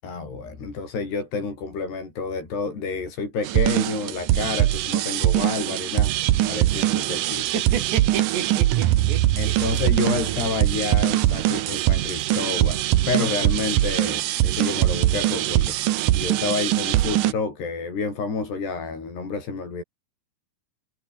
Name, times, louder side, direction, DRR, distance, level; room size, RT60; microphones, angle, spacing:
voice 1, 0.0-6.1 6.5-7.6 9.4-19.8, left 4 dB, 70° left, 9.8 m, -29 dB
sound 1, 3.4-17.3, right 14 dB, 70° right, 2.0 m, -22 dB
voice 2, 7.3-9.5, right 7 dB, 90° right, 6.1 m, -31 dB
omnidirectional pair, 4.9 m